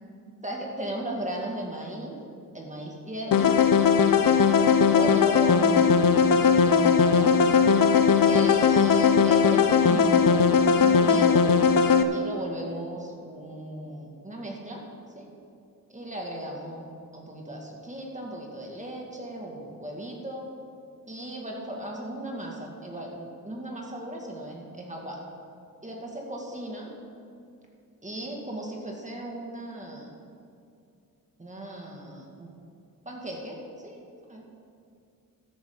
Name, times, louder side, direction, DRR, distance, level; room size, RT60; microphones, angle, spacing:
voice 1, 0.4-2.2 2.5-3.6 4.2-5.8 6.2-7.3 8.2-11.5 12.1-14.8 15.1-15.3 15.9-20.5 21.1-25.2 25.8-26.9 28.0-30.1 31.4-32.5 33.0-34.0 34.3-34.4, right 1 dB, 20° right, -1 dB, 2.2 m, -37 dB
sound 1, 3.3-12.0, left 6 dB, 70° left, 0.8 m, -19 dB
13.5 x 11.5 x 3.9 m, 2.5 s
wide cardioid pair, 90°, 35 cm